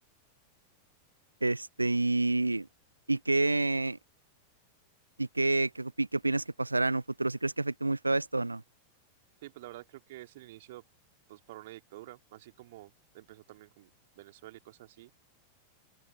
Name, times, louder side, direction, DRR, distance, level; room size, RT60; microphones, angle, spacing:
voice 1, 1.4-2.7 3.1-4.0 5.2-8.6, right 2 dB, 85° right, 0.5 m, -28 dB
voice 2, 9.4-10.8 11.3-13.9 14.2-15.1, right 16 dB, 55° right, 2.8 m, -49 dB
figure-of-eight pair, 90°, 0 cm